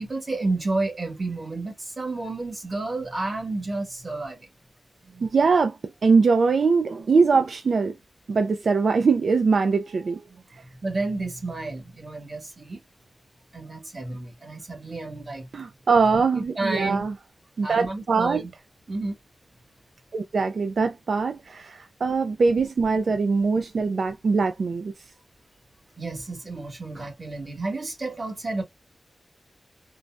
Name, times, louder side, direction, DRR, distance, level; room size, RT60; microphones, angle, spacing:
voice 1, 0.0-4.5 10.8-12.8 13.5-15.5 16.3-17.0 17.6-18.5 18.9-19.2 26.0-28.6, right 2 dB, 40° right, 1.3 m, -31 dB
voice 2, 5.2-8.0 8.3-10.2 10.5-10.6 15.5-17.1 17.6-18.4 20.1-24.9, right 4 dB, 70° right, 0.3 m, -22 dB
3.8 x 2.1 x 2.3 m
wide cardioid pair, 105°, 0 cm